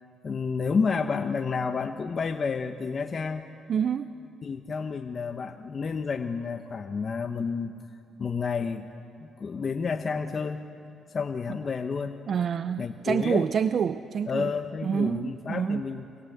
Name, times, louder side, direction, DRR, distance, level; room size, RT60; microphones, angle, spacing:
voice 1, 0.2-3.5 4.4-7.7 8.2-8.9 9.2-10.6 11.1-12.2 12.8-13.5 14.3-16.1, left 5 dB, 40° left, 6 dB, 1.0 m, -30 dB
voice 2, 3.7-4.1 12.3-14.5 14.8-15.8, right 7 dB, 55° right, 12 dB, 0.6 m, -27 dB
26.0 x 26.0 x 8.1 m, 2.6 s
cardioid pair, 90°, 0 cm